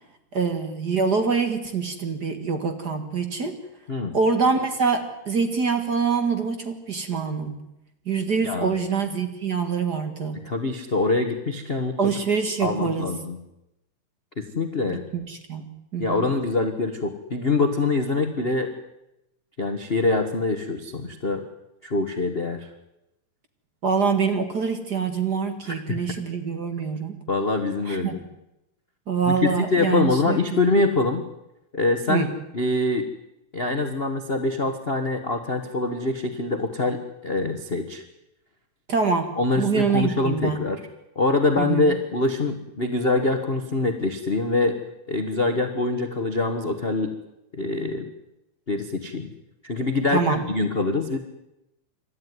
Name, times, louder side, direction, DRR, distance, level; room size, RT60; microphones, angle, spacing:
voice 1, 0.3-3.6 4.1-7.6 8.0-10.4 12.0-13.1 14.9-15.7 15.9-16.3 23.8-27.2 27.9-28.2 29.1-30.4 32.1-32.3 38.9-40.6 41.6-41.9 50.1-50.4, right 5 dB, 40° right, 8 dB, 1.7 m, -25 dB
voice 2, 10.4-12.0 12.6-13.4 14.4-15.0 16.0-18.7 19.6-21.4 21.8-22.7 25.6-26.0 27.3-28.2 29.2-31.2 31.7-32.3 32.5-33.1 33.5-38.0 39.4-40.8 41.1-44.8 45.1-47.1 47.5-48.1 48.7-49.3 49.6-51.2, left 3 dB, 60° left, 7 dB, 0.6 m, -24 dB
27.0 x 13.0 x 9.5 m, 0.90 s
omnidirectional pair, 3.6 m